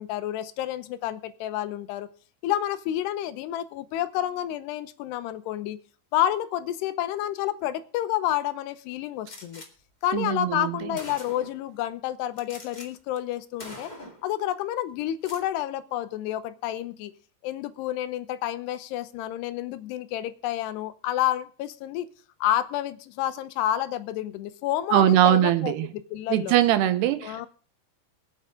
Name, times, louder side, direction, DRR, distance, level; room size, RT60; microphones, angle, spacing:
voice 1, 0.0-2.1 2.4-5.8 6.1-9.6 10.0-13.9 14.2-17.1 17.4-22.1 22.4-26.5 27.2-27.5, left 12 dB, 90° left, 2.9 m, -29 dB
Gunshot gunfire, 9.3-9.7 10.5-10.6 10.9-11.6 12.4-12.9 13.2-13.3 13.6-14.3 15.1-15.5, left 1 dB, 25° left, 1.0 m, -43 dB
voice 2, 10.1-10.9 24.9-25.9 26.3-27.5, right 12 dB, 90° right, 3.0 m, -21 dB
23.5 x 8.8 x 3.7 m
omnidirectional pair, 4.7 m